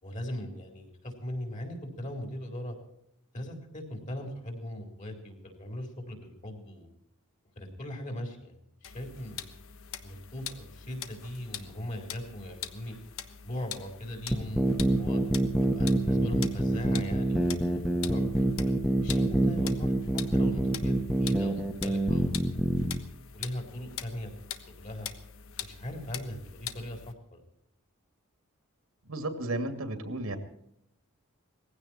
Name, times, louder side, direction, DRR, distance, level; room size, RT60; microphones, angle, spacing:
voice 1, 0.0-2.8 3.3-6.9 7.6-8.6 8.8-9.5 10.0-13.0 13.4-15.2 15.7-18.5 19.0-22.8 23.3-24.3 24.8-25.1 25.6-27.4, left 1 dB, 35° left, 4 dB, 3.9 m, -39 dB
sound 1, 8.8-27.1, left 9 dB, 65° left, 1.2 m, -44 dB
sound 2, 14.3-23.0, right 1 dB, ahead, 1.3 m, -26 dB
voice 2, 29.1-30.4, right 2 dB, 75° right, 7 dB, 2.5 m, -33 dB
19.5 x 16.0 x 4.4 m, 0.74 s
head